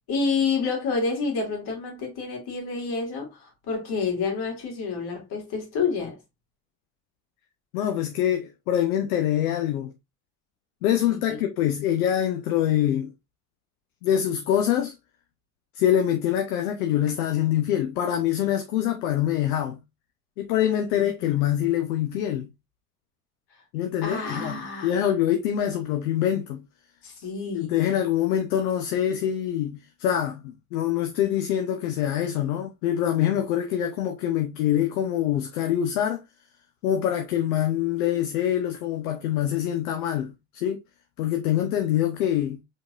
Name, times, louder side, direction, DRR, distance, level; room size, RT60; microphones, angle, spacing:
voice 1, 0.1-6.2 11.1-11.4 20.9-21.5 24.0-24.9 27.0-27.7, left 4 dB, 60° left, 2.4 m, -29 dB
voice 2, 7.7-9.9 10.8-13.1 14.0-14.9 15.7-19.8 20.4-22.5 23.7-24.5 24.8-26.6 27.5-36.2 36.8-40.8 41.2-42.6, left 11 dB, 75° left, 0.8 m, -25 dB
4.9 x 3.9 x 2.5 m
hypercardioid pair, 60°, 44 cm